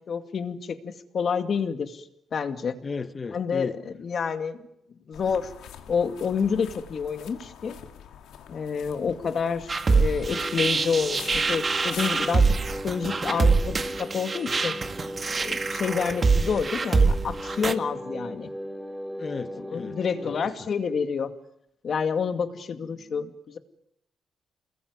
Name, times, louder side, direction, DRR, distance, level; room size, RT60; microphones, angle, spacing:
voice 1, 0.1-2.1 2.3-2.8 3.3-4.6 5.1-5.5 5.9-7.8 8.5-12.5 12.8-14.8 15.4-18.5 19.7-21.3 21.8-23.6, left 6 dB, 45° left, 2.3 m, -28 dB
voice 2, 2.8-3.8 19.2-20.0 20.2-20.3 20.6-20.7 22.9-23.3, left 4 dB, 25° left, 1.2 m, -35 dB
sound 1, 5.1-12.5, left 9 dB, 90° left, 2.6 m, -45 dB
sound 2, 9.7-17.7, right 4 dB, 25° right, 1.8 m, -24 dB
sound 3, 10.3-20.5, equal, ahead, 2.7 m, -37 dB
29.0 x 20.5 x 9.7 m
cardioid pair, 160°, 0 cm